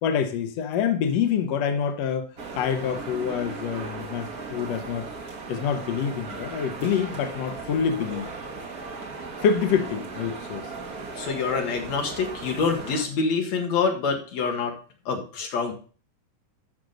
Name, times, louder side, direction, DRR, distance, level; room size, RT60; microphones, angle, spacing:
voice 1, 0.0-2.3 2.5-5.1 5.5-8.3 9.4-10.7, left 7 dB, 80° left, 7 dB, 1.5 m, -26 dB
sound 1, 2.4-13.0, right 4 dB, 50° right, 1.0 m, -37 dB
voice 2, 11.2-14.7 15.1-15.7, left 5 dB, 55° left, 2 dB, 2.6 m, -26 dB
12.0 x 6.2 x 3.9 m, 0.40 s
omnidirectional pair, 4.2 m